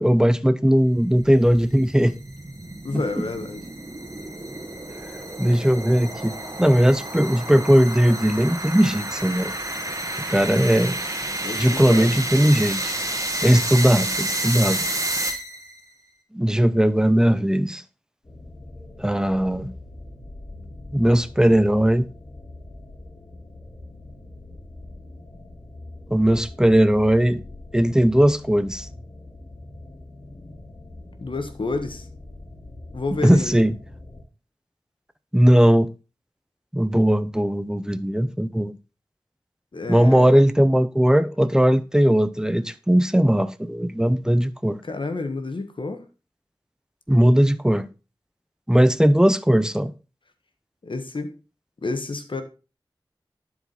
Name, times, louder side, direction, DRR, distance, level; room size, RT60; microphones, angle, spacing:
voice 1, 0.0-2.2 2.9-3.2 5.4-6.3 6.6-9.5 10.3-11.0 11.5-12.9 13.4-14.8 16.3-17.8 19.0-19.7 20.9-22.1 26.1-27.4 27.7-28.9 33.2-33.7 35.3-35.9 36.7-38.7 39.9-44.8 47.1-47.9 48.7-49.9, equal, 5° right, 0.8 m, -18 dB
sound 1, 1.0-15.8, right 1 dB, 35° right, 1.6 m, -30 dB
voice 2, 2.8-3.6 11.4-12.1 31.2-32.0 32.9-33.7 39.7-40.3 44.8-46.0 50.8-51.3 51.8-52.4, left 3 dB, 70° left, 1.5 m, -29 dB
sound 2, 18.2-34.2, left 2 dB, 50° left, 3.7 m, -42 dB
11.5 x 4.9 x 4.1 m
wide cardioid pair, 50°, 9 cm